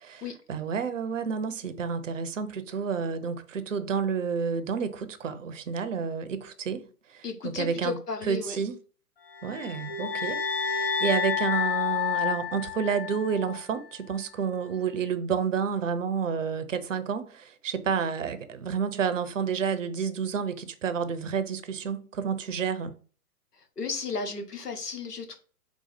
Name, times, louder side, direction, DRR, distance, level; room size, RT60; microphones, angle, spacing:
voice 1, 0.0-6.8 7.1-8.0 8.2-8.8 9.4-22.9, right 6 dB, 55° right, 0.6 m, -30 dB
voice 2, 7.2-8.6 23.8-25.4, left 4 dB, 80° left, 1.1 m, -34 dB
sound 1, 9.4-13.6, left 7 dB, 40° left, 0.6 m, -29 dB
4.0 x 2.3 x 4.0 m
figure-of-eight pair, 125°, 46 cm